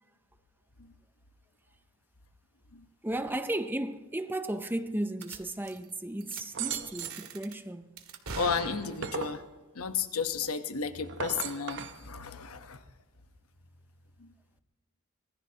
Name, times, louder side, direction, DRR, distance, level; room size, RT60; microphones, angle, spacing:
voice 1, 3.0-8.0, right 1 dB, 10° right, 0.6 m, -34 dB
sound 1, 5.2-5.4 5.6-5.9 6.2-6.4 6.7-7.5 8.0-9.3, right 4 dB, 80° right, 1.9 m, -42 dB
sound 2, 6.5-7.3 8.6-9.4 11.0-12.0, right 6 dB, 55° right, 0.8 m, -37 dB
voice 2, 8.4-9.4 9.7-12.8 14.2-14.3, left 6 dB, 75° left, 1.0 m, -33 dB
25.0 x 20.0 x 2.9 m
head